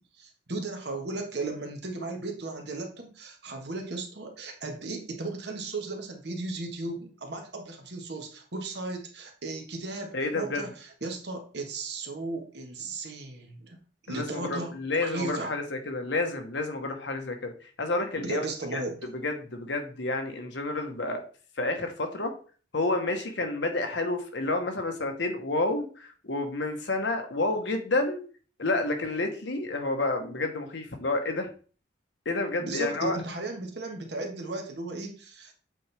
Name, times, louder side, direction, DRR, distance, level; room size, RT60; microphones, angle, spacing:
voice 1, 0.2-13.8 14.0-15.5 18.2-19.0 32.6-35.5, right 2 dB, 60° right, 3 dB, 1.4 m, -36 dB
voice 2, 10.1-10.6 14.1-17.5 17.8-18.5 18.7-18.8 19.1-21.2 21.6-22.3 22.7-28.2 28.6-31.5 32.2-33.2, left 2 dB, 70° left, 5 dB, 1.1 m, -29 dB
7.8 x 4.3 x 3.4 m, 0.39 s
head